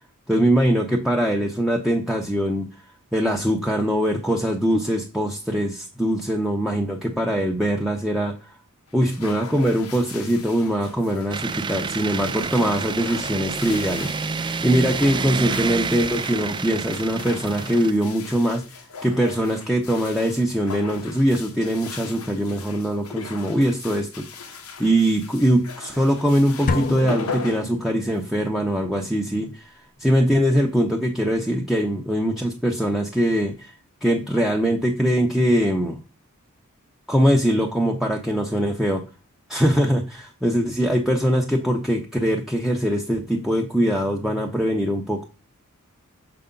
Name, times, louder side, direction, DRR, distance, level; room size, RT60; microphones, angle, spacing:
voice 1, 0.3-2.7 3.1-8.5 8.9-18.6 19.0-29.7 30.0-33.7 34.0-36.0 37.1-39.0 39.5-45.2, equal, ahead, -1 dB, 0.8 m, -22 dB
sound 1, 8.9-28.5, left 5 dB, 80° left, 1.1 m, -39 dB
sound 2, 11.3-17.9, right 5 dB, 20° right, 0.3 m, -29 dB
sound 3, 26.7-28.4, left 3 dB, 40° left, 0.5 m, -29 dB
6.8 x 4.9 x 3.7 m, 0.32 s
head